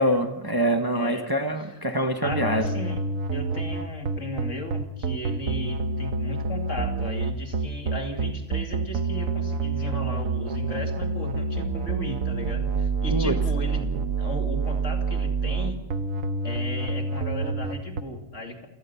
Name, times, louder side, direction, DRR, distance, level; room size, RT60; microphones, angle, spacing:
voice 1, 0.0-2.6 13.1-13.4, equal, 20° right, 6 dB, 1.0 m, -24 dB
voice 2, 0.9-1.3 1.6-1.7 2.2-3.1 3.3-13.8 14.2-15.8 16.4-18.7, left 1 dB, 65° left, 3 dB, 2.9 m, -36 dB
sound 1, 2.2-18.0, right 4 dB, 80° right, 1.4 m, -27 dB
28.0 x 17.5 x 5.6 m, 0.93 s
omnidirectional pair, 1.4 m